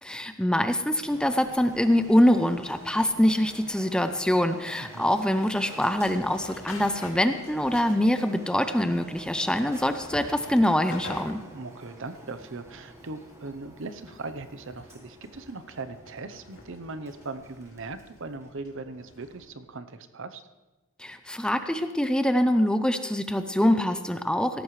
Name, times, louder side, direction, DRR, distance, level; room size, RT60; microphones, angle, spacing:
voice 1, 0.0-11.4 21.0-24.6, left 1 dB, 5° left, 8 dB, 0.5 m, -24 dB
Printer, 1.0-18.7, equal, 15° right, 1.4 m, -48 dB
voice 2, 4.8-5.1 11.5-20.4, right 3 dB, 60° right, 11 dB, 0.8 m, -39 dB
sound 1, 6.3-8.2 8.5-8.6 8.9-11.6 12.1-19.5, left 2 dB, 75° left, 2.4 m, -48 dB
17.5 x 14.0 x 3.2 m, 1.1 s
head